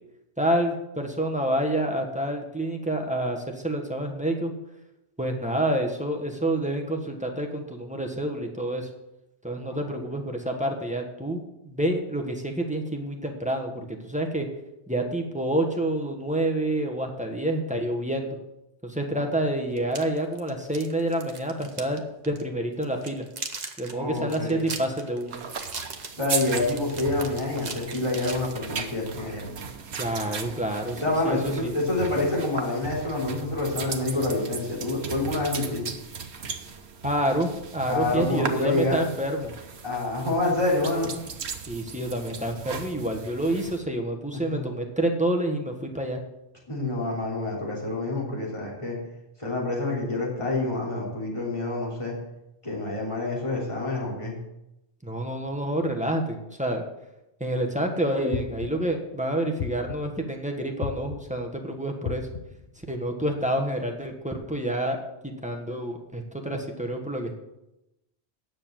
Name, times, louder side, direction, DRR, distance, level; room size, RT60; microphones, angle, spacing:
voice 1, 0.4-4.5 5.2-8.9 9.4-14.5 14.9-18.4 18.8-23.2 23.8-25.4 30.0-31.7 37.0-39.5 41.7-46.2 55.0-56.8 57.4-62.3 62.9-65.0 65.2-67.3, right 1 dB, 5° right, 2 dB, 1.3 m, -28 dB
sound 1, 19.8-22.0 22.2-22.4 22.8-28.9, right 4 dB, 40° right, 1.1 m, -38 dB
voice 2, 23.9-24.6 26.1-29.4 31.0-35.8 37.9-39.0 39.8-41.1 44.5-44.6 46.7-49.0 49.4-52.1 52.6-54.3, left 2 dB, 25° left, -4 dB, 3.4 m, -27 dB
sound 2, 25.3-43.8, right 6 dB, 75° right, 1.2 m, -37 dB
sound 3, 58.3-59.0 59.6-60.2 60.8-61.5 62.0-62.7, left 8 dB, 70° left, 1.2 m, -35 dB
9.7 x 6.7 x 7.6 m, 0.90 s
omnidirectional pair, 1.1 m